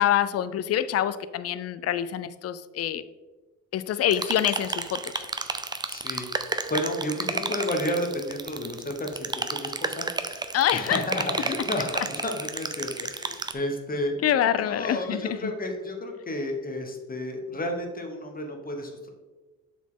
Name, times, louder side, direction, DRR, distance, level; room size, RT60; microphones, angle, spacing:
voice 1, 0.0-3.0 3.7-5.3 10.5-11.0 14.2-15.5, left 10 dB, 55° left, 14 dB, 0.4 m, -26 dB
sound 1, 4.1-13.5, right 3 dB, 15° right, 0.5 m, -32 dB
voice 2, 5.9-10.4 10.7-14.2 14.5-19.1, left 1 dB, 30° left, 3 dB, 1.1 m, -32 dB
7.0 x 4.3 x 3.7 m, 1.2 s
cardioid pair, 90°, 30 cm